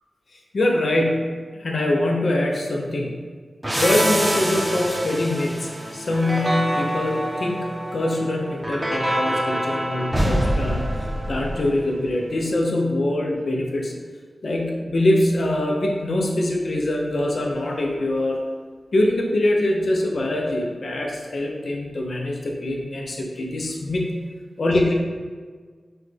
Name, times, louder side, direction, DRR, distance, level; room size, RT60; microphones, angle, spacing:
voice 1, 0.5-3.2 3.8-13.9 14.4-18.4 18.9-24.2 24.6-24.9, left 1 dB, 70° left, 0 dB, 0.6 m, -23 dB
sound 1, 3.6-12.1, right 1 dB, 20° right, 0.7 m, -25 dB
6.1 x 2.3 x 3.2 m, 1.6 s
wide cardioid pair, 80°, 0 cm